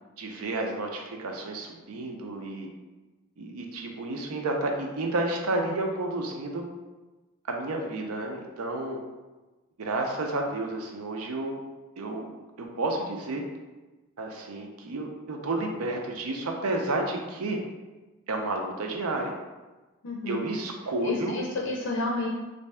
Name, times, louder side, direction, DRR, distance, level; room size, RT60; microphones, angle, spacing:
voice 1, 0.2-2.7 3.4-6.6 7.5-9.0 9.8-11.6 12.0-12.3 12.6-13.4 14.2-17.6 18.3-19.3 20.3-21.4, right 2 dB, 85° right, 2 dB, 0.6 m, -31 dB
voice 2, 20.0-20.5 21.0-22.3, left 2 dB, 65° left, -2 dB, 0.5 m, -31 dB
3.1 x 2.6 x 3.3 m, 1.2 s
head